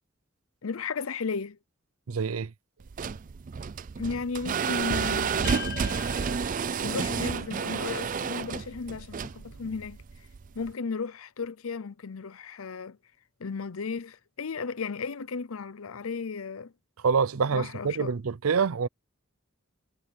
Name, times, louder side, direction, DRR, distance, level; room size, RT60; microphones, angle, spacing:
voice 1, 0.6-1.6 4.0-5.6 6.8-10.0 10.5-13.0 13.4-16.7 17.5-18.1, left 5 dB, 85° left, 0.7 m, -34 dB
voice 2, 2.1-2.5 17.0-18.9, right 5 dB, 90° right, 0.6 m, -26 dB
sound 1, 2.8-10.7, right 6 dB, 40° right, 0.4 m, -31 dB
sound 2, 5.4-9.9, left 7 dB, 45° left, 0.8 m, -43 dB
head